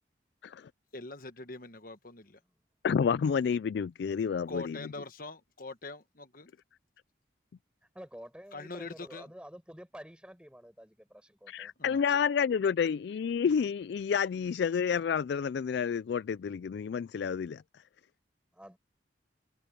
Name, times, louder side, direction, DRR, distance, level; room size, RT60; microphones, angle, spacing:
voice 1, 0.9-2.4 4.5-6.5 8.5-9.3 11.8-12.0, left 3 dB, 50° left, 1.4 m, -43 dB
voice 2, 2.8-4.8 11.5-17.6, left 6 dB, 65° left, 0.3 m, -29 dB
voice 3, 7.9-11.7 12.1-12.2 18.5-18.8, equal, 5° right, 7.1 m, -49 dB
head